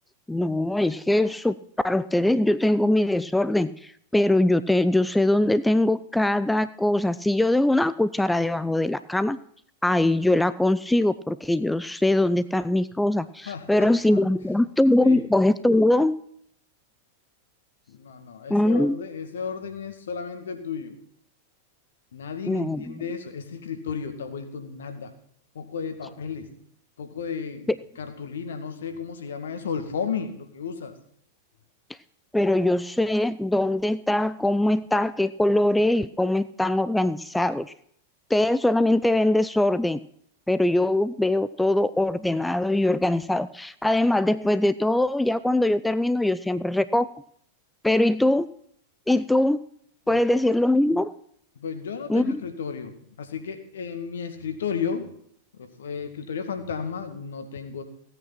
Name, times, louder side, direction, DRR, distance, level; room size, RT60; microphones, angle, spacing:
voice 1, 0.3-1.6 1.8-9.4 9.8-16.2 18.5-19.0 22.5-23.0 32.3-37.7 38.3-40.0 40.5-47.1 47.8-48.5 49.1-49.6 50.1-51.1 52.1-52.4, left 1 dB, 5° left, 16 dB, 0.4 m, -22 dB
voice 2, 13.4-14.2 15.0-15.3 17.9-21.0 22.1-25.1 25.5-26.5 27.0-27.7 28.0-30.9 50.1-50.2 51.6-55.1 55.5-57.8, left 6 dB, 65° left, 7 dB, 2.1 m, -33 dB
16.5 x 9.0 x 5.9 m, 0.66 s
figure-of-eight pair, 90°, 0 cm